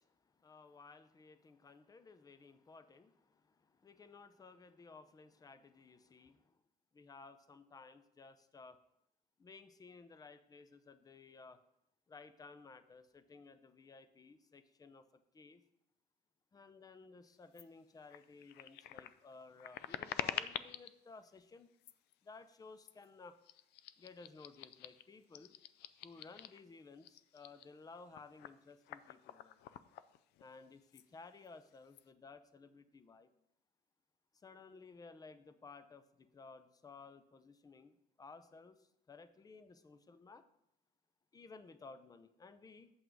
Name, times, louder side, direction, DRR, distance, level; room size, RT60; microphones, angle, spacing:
voice 1, 0.0-6.5 6.9-8.8 9.4-11.6 12.1-15.6 16.5-21.7 22.2-23.4 24.0-25.6 26.0-29.6 30.4-33.3 34.3-40.4 41.3-42.9, left 4 dB, 20° left, 12 dB, 0.6 m, -57 dB
sound 1, 17.5-17.6 18.1-20.9 21.7-22.1 22.8-23.1 23.4-26.6 27.0-30.6 30.9-31.1 31.4-32.0, left 12 dB, 80° left, 0.4 m, -47 dB
7.9 x 5.8 x 4.7 m, 0.78 s
cardioid pair, 110°, 17 cm